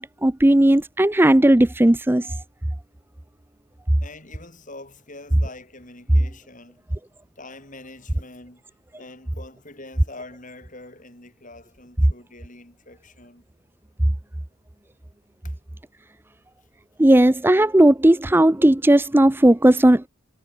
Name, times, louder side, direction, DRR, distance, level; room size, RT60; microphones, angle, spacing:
voice 1, 0.0-2.4 17.0-20.1, right 1 dB, 10° right, 0.4 m, -16 dB
voice 2, 4.0-6.9 7.4-8.6 9.0-13.4 15.4-15.6, left 2 dB, 35° left, 4.5 m, -44 dB
head